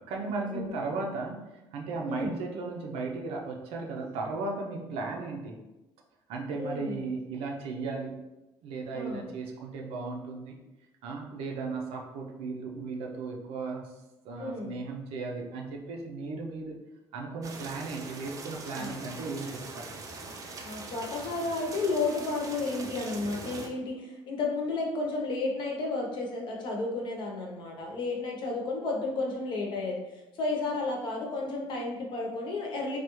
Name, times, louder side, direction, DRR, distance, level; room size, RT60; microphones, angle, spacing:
voice 1, 0.0-5.6 6.3-8.2 8.6-10.5 11.0-13.9 14.2-16.8 17.1-20.0, right 3 dB, 85° right, 0 dB, 0.6 m, -36 dB
voice 2, 6.5-7.0 8.9-9.2 14.4-14.7 18.7-18.9 20.6-30.0 30.3-33.0, left 3 dB, 55° left, 0 dB, 0.8 m, -32 dB
sound 1, 17.4-23.7, right 3 dB, 35° right, 0.4 m, -42 dB
3.4 x 2.3 x 3.0 m, 1.0 s
cardioid pair, 130°, 10 cm